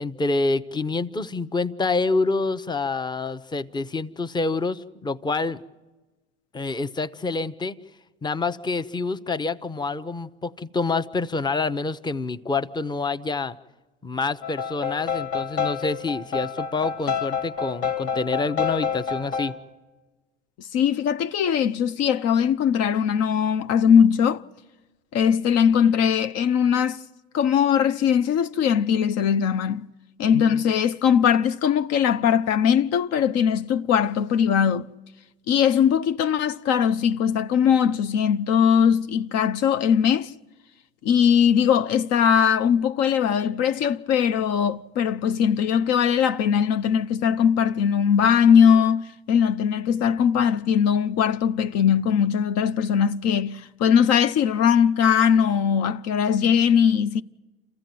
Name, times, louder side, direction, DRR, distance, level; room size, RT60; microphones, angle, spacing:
voice 1, 0.0-5.6 6.5-7.8 8.2-13.6 14.0-19.5, left 3 dB, 15° left, 0.8 m, -27 dB
sound 1, 14.4-19.5, left 6 dB, 75° left, 2.8 m, -28 dB
voice 2, 20.6-24.4 25.1-27.0 27.3-29.9 30.2-34.9 35.5-40.3 41.0-57.2, left 8 dB, 55° left, 0.7 m, -20 dB
27.5 x 15.0 x 9.3 m
hypercardioid pair, 75°, 31 cm